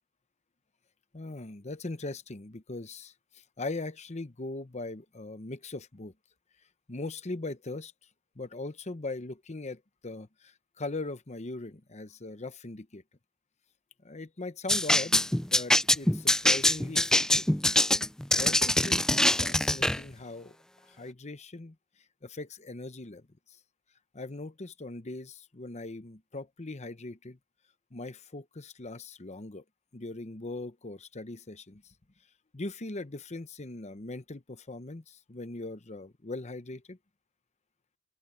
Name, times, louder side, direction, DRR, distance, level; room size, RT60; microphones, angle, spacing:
voice 1, 1.1-6.1 6.9-7.9 8.4-13.0 14.0-15.2 15.5-17.5 18.3-20.6 20.9-21.8 22.2-23.2 24.1-27.4 27.9-29.6 29.9-31.8 32.5-37.0, left 2 dB, 30° left, 0.9 m, -40 dB
sound 1, 14.7-20.0, left 1 dB, 5° left, 0.3 m, -24 dB
open air
head